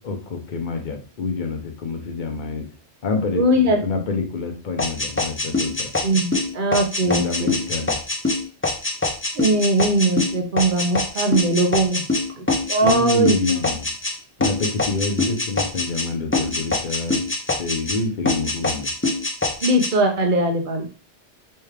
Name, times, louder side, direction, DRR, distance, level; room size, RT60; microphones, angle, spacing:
voice 1, 0.0-2.6 3.0-5.9 7.0-8.0 12.8-13.9 14.4-17.2 17.6-18.9, left 4 dB, 45° left, 3 dB, 0.9 m, -27 dB
voice 2, 3.4-3.8 6.0-7.5 9.3-12.0 12.4-13.6 19.6-20.9, right 2 dB, 50° right, 3 dB, 0.9 m, -20 dB
sound 1, 4.8-14.1 14.4-16.1 16.3-18.0 18.3-19.9, left 2 dB, 15° left, 0.4 m, -24 dB
3.4 x 3.3 x 3.3 m, 0.37 s
omnidirectional pair, 1.2 m